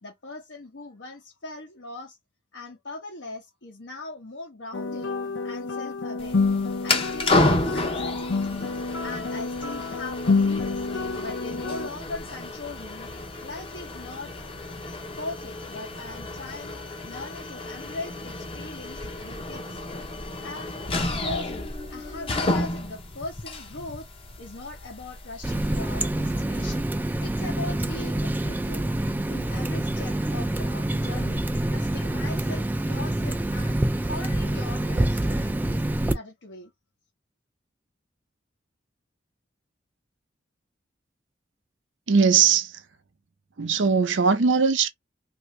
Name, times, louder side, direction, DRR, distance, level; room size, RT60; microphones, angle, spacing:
voice 1, 0.0-2.2 2.5-5.2 5.4-6.4 6.8-8.7 9.0-10.8 11.2-13.1 13.4-14.3 15.2-16.8 17.0-24.1 24.4-26.9 27.2-28.9 29.3-36.7, left 2 dB, 70° left, 1.0 m, -40 dB
sound 1, 4.7-11.9, left 4 dB, 85° left, 0.6 m, -28 dB
sound 2, 6.2-26.0, left 2 dB, 30° left, 0.7 m, -31 dB
Water tap faucet, 25.4-36.1, right 1 dB, 10° right, 0.3 m, -26 dB
voice 2, 42.1-42.8 43.6-44.9, right 5 dB, 90° right, 0.7 m, -20 dB
2.8 x 2.7 x 3.2 m
head